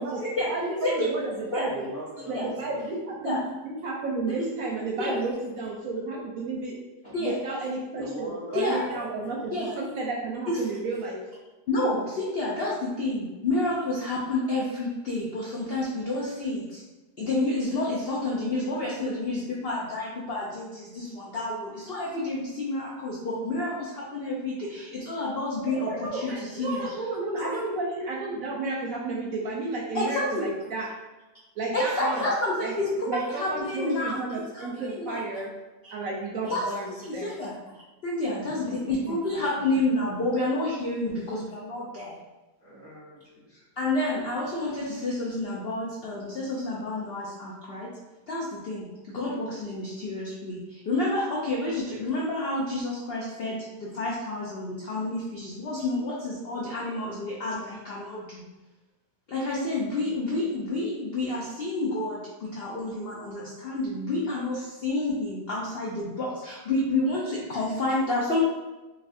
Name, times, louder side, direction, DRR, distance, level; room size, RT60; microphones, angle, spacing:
voice 1, 0.5-1.9 2.3-6.8 7.2-11.2 25.9-30.9 31.6-32.3 32.6-32.7 33.1-35.5 35.9-37.3, right 3 dB, 70° right, -2 dB, 0.9 m, -32 dB
voice 2, 1.6-2.8 7.0-7.1 7.9-9.5 35.9-36.0 38.4-39.1 41.1-41.2 42.6-43.6, right 1 dB, 35° left, -9 dB, 1.5 m, -42 dB
voice 3, 8.5-8.8 9.5-9.7 10.5-10.6 11.7-16.8 17.2-26.9 27.3-27.6 29.9-30.4 31.7-34.2 34.5-34.7 35.0-35.2 35.8-35.9 36.5-36.7 37.1-37.5 38.0-42.2 43.8-47.9 48.3-58.4 59.3-68.4, left 2 dB, 70° left, -5 dB, 0.5 m, -29 dB
4.0 x 2.7 x 2.6 m, 1.1 s
omnidirectional pair, 1.7 m